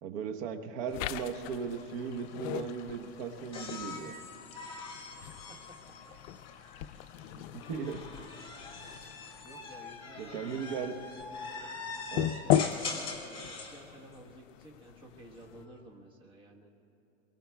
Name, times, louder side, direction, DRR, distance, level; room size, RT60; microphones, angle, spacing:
voice 1, 0.0-4.1 7.3-8.0 10.2-10.9 12.1-12.3, right 6 dB, 50° right, 5 dB, 1.1 m, -37 dB
sound 1, 0.9-15.7, left 11 dB, 75° left, 0.6 m, -38 dB
sound 2, 0.9-9.4, left 7 dB, 55° left, 2.1 m, -56 dB
sound 3, 3.5-6.8 7.6-13.8 15.3-15.8, left 4 dB, 15° left, 2.0 m, -43 dB
voice 2, 5.1-5.8 6.0-6.1 9.4-10.7 12.3-16.7, right 1 dB, 15° right, -1 dB, 1.3 m, -53 dB
24.5 x 23.0 x 2.3 m, 3.0 s
supercardioid pair, 155°, 39 cm